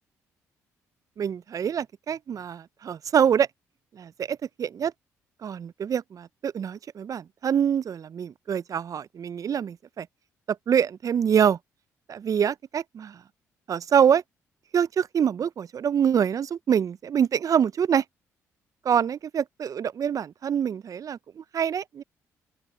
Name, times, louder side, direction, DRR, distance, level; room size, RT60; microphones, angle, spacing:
voice 1, 1.2-3.5 4.0-4.9 5.4-10.1 10.5-11.6 12.1-13.2 13.7-14.2 14.7-18.0 18.8-22.0, right 8 dB, 50° right, 0.6 m, -25 dB
open air
hypercardioid pair, 50°, 7 cm